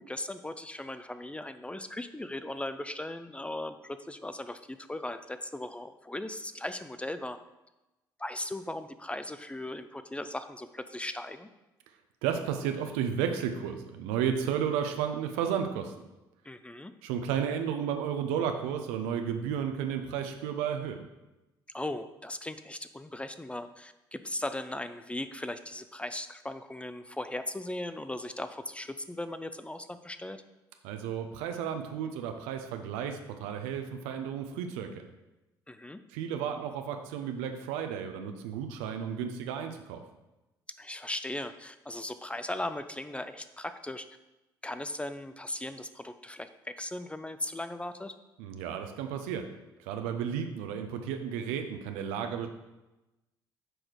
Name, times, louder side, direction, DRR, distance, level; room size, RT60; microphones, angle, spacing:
voice 1, 0.0-7.4 8.2-11.5 16.4-16.9 21.7-30.4 35.7-36.0 40.8-44.1 44.6-48.2, left 1 dB, 10° left, 10 dB, 0.5 m, -38 dB
voice 2, 12.2-15.9 17.0-21.0 30.8-35.1 36.1-40.0 48.4-49.4 49.9-52.5, right 8 dB, 70° right, 6 dB, 0.7 m, -33 dB
6.2 x 4.9 x 4.6 m, 1.0 s
hypercardioid pair, 50°, 11 cm